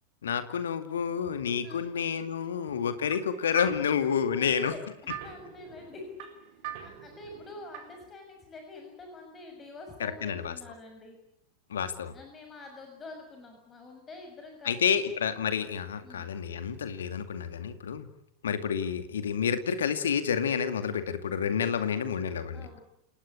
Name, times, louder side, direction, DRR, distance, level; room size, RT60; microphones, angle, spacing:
voice 1, 0.2-4.7 10.0-10.5 11.7-12.1 14.6-18.1 18.4-22.8, left 7 dB, 65° left, 10 dB, 2.3 m, -29 dB
voice 2, 2.2-2.7 4.4-11.2 12.1-15.0 16.0-16.3 22.5-22.8, left 3 dB, 20° left, 3 dB, 6.4 m, -47 dB
sound 1, 2.7-8.1, right 10 dB, 50° right, 4.2 m, -44 dB
29.0 x 19.0 x 8.7 m, 0.79 s
figure-of-eight pair, 90°, 0 cm